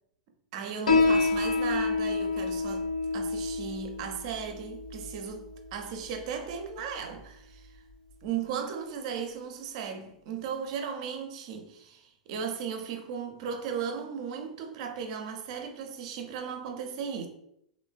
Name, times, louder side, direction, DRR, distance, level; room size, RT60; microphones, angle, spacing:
voice 1, 0.5-2.9 3.1-7.8 8.2-17.3, right 7 dB, 55° right, 0.5 m, -36 dB
Piano, 0.9-7.9, left 3 dB, 85° left, 0.5 m, -29 dB
3.1 x 2.1 x 2.3 m
hypercardioid pair, 105°, 4 cm